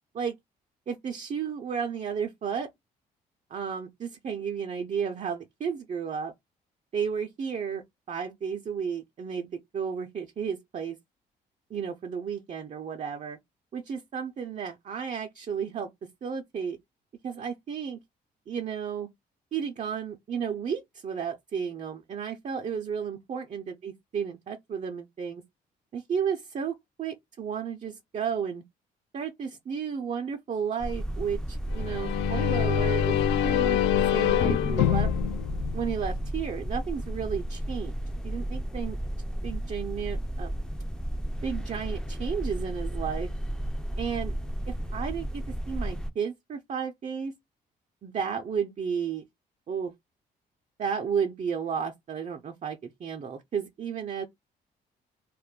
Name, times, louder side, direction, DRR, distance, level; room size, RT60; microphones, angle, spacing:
voice 1, 0.9-2.7 3.5-6.3 6.9-11.0 11.7-13.4 13.7-15.9 16.2-16.8 17.2-18.0 18.5-19.1 19.5-25.4 25.9-28.6 29.1-33.2 33.4-33.8 34.1-35.1 35.7-37.9 38.2-39.0 39.4-40.5 41.4-43.3 44.0-44.3 44.7-47.3 48.0-49.3 49.7-49.9 50.8-54.3, right 7 dB, 40° right, 0.6 m, -33 dB
sound 1, 30.8-46.1, right 1 dB, 5° left, 0.5 m, -33 dB
sound 2, 31.7-36.5, left 11 dB, 80° left, 0.4 m, -26 dB
2.4 x 2.1 x 3.5 m
supercardioid pair, 65°, 18 cm